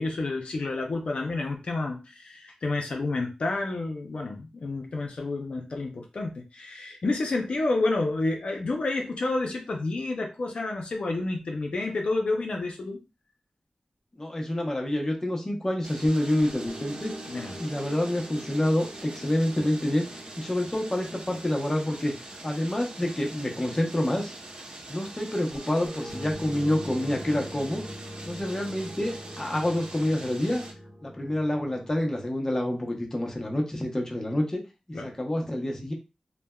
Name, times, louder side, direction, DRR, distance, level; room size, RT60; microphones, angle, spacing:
voice 1, 0.0-13.0 17.3-17.6 34.9-35.1, left 2 dB, 65° left, 1 dB, 0.5 m, -29 dB
voice 2, 14.2-17.1 17.6-24.3 24.9-27.8 28.3-30.6 31.0-34.6 34.9-35.9, left 1 dB, 25° left, 1 dB, 0.7 m, -28 dB
sound 1, 15.8-30.7, right 2 dB, 55° right, 0.6 m, -44 dB
sound 2, 16.0-24.2 25.5-32.2, equal, 40° right, 1.0 m, -43 dB
3.2 x 2.1 x 2.2 m, 0.28 s
wide cardioid pair, 80°, 2 cm